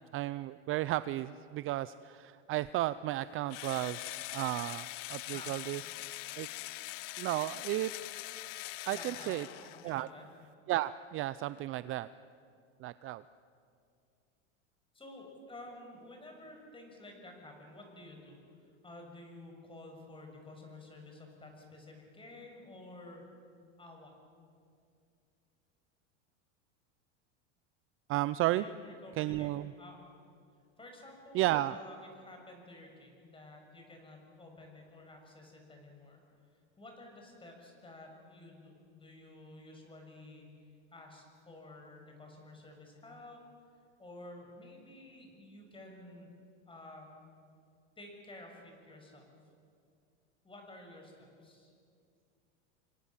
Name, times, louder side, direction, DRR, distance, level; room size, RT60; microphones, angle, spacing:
voice 1, 0.1-5.8 6.4-6.5 7.2-7.9 8.9-9.4 9.8-10.1 10.7-12.1 12.8-13.2 28.1-28.6 29.2-29.7 31.3-31.8, right 16 dB, 35° right, 15 dB, 0.5 m, -33 dB
Engine / Drill, 3.5-10.1, left 19 dB, 80° left, 0.6 m, -43 dB
voice 2, 8.9-9.4 9.7-10.2 14.9-23.2 23.8-24.1 28.5-30.0 30.8-40.5 40.9-43.4 44.0-46.3 46.7-47.1 48.0-49.2 50.4-51.7, left 2 dB, 15° left, 2 dB, 6.8 m, -52 dB
29.0 x 24.5 x 7.4 m, 2.4 s
supercardioid pair, 125°, 37 cm